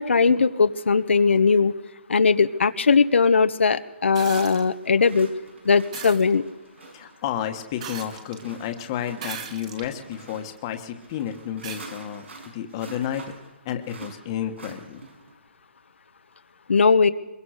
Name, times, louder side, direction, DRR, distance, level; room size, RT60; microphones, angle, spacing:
voice 1, 0.0-1.7 2.1-5.3 5.6-6.4 16.7-17.1, left 5 dB, 80° left, 10 dB, 1.3 m, -19 dB
sound 1, 3.4-3.5 4.3-15.4, right 3 dB, 80° right, 6.4 m, -46 dB
sound 2, 4.1-4.6 5.9-6.2 7.8-8.4 9.2-9.9 10.6-10.7 11.6-11.8 13.3-13.4, right 7 dB, 35° right, 2.1 m, -37 dB
voice 2, 6.9-12.2 12.5-13.2 13.6-15.0, left 10 dB, 25° left, 6 dB, 1.5 m, -31 dB
23.0 x 22.5 x 6.6 m, 1.1 s
hypercardioid pair, 170°, 6 cm